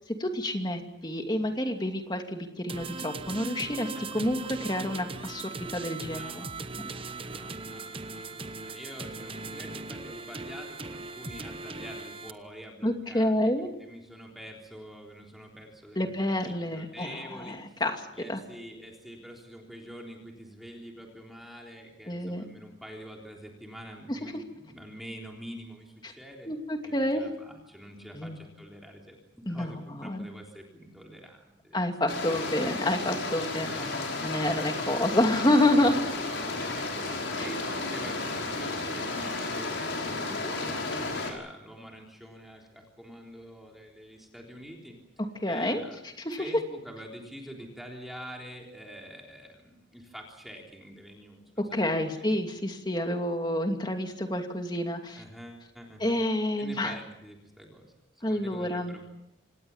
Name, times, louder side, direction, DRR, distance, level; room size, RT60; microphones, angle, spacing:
voice 1, 0.2-6.5 6.8-6.9 12.8-13.7 16.0-18.0 18.3-18.4 22.1-22.4 24.1-24.2 26.5-27.2 28.1-28.4 29.5-29.7 30.0-30.3 31.7-36.0 37.3-37.5 40.4-40.5 45.4-45.8 46.2-46.5 51.7-55.2 56.0-57.0 58.2-59.0, left 1 dB, 20° left, 4 dB, 2.6 m, -28 dB
sound 1, 2.7-12.3, right 3 dB, 30° right, 0.9 m, -39 dB
voice 2, 3.9-4.3 6.0-13.5 13.8-17.8 18.1-26.5 26.8-29.2 29.5-31.8 33.5-34.0 36.3-45.0 45.5-46.0 46.3-52.3 55.2-56.2 56.6-57.9 58.3-59.1, equal, ahead, 0 dB, 3.6 m, -46 dB
sound 2, 32.1-41.3, left 3 dB, 75° left, 5.5 m, -33 dB
26.5 x 19.0 x 7.3 m, 0.86 s
head